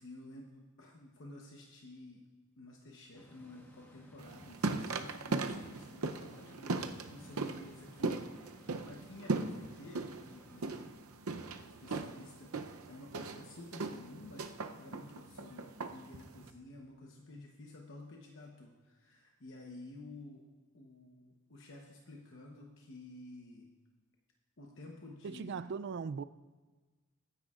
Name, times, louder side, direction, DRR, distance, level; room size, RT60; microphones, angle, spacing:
voice 1, 0.0-2.2 2.6-8.2 8.8-14.5 14.8-20.5 20.7-23.7 24.6-25.7, left 2 dB, 60° left, 1.0 m, -52 dB
sound 1, 3.1-10.9, equal, 10° left, 1.2 m, -58 dB
sound 2, 4.2-16.5, right 3 dB, 85° right, 0.7 m, -39 dB
voice 2, 25.2-26.2, right 5 dB, 55° right, 0.3 m, -39 dB
22.0 x 10.0 x 2.5 m
head